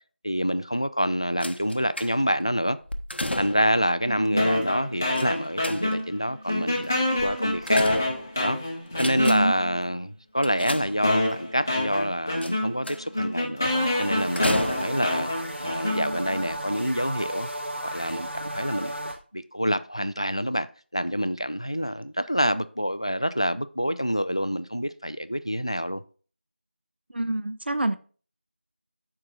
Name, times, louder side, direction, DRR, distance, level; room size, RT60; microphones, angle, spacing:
voice 1, 0.2-2.8 3.4-7.8 8.4-8.6 9.0-13.7 14.0-17.5 17.8-18.9 19.3-20.7 20.9-26.0, equal, 30° left, 0.3 m, -27 dB
sound 1, 1.4-2.4 2.9-3.8 5.2-6.2 7.2-8.5 8.9-9.7 10.4-11.4 12.4-13.2 14.4-15.2 16.0-16.1 16.5-16.6, left 1 dB, 65° left, 0.8 m, -33 dB
voice 2, 4.1-4.4 9.2-9.5 27.1-28.0, right 1 dB, 65° right, 0.6 m, -26 dB
sound 2, 4.4-6.2 6.5-9.7 10.4-10.5 11.0-16.4, left 1 dB, 15° left, 0.8 m, -27 dB
sound 3, 13.6-19.2, right 1 dB, 90° right, 2.6 m, -34 dB
13.0 x 4.8 x 2.5 m
figure-of-eight pair, 180°, 6 cm